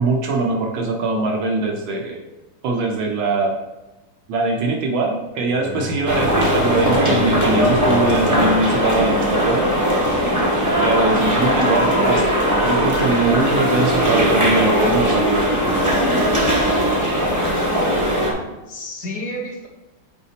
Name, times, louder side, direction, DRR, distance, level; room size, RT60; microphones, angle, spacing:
voice 1, 0.0-2.2 2.6-3.5 4.3-9.7 10.8-12.2 12.6-15.6, right 3 dB, 75° right, 1 dB, 1.5 m, -22 dB
Bowed string instrument, 5.5-9.8, left 5 dB, 70° left, 1.1 m, -32 dB
sound 1, 6.1-18.3, equal, 20° right, 0.5 m, -19 dB
voice 2, 11.5-11.8 18.7-19.7, left 1 dB, 55° left, -3 dB, 1.7 m, -30 dB
8.3 x 4.0 x 2.8 m, 1.1 s
omnidirectional pair, 2.3 m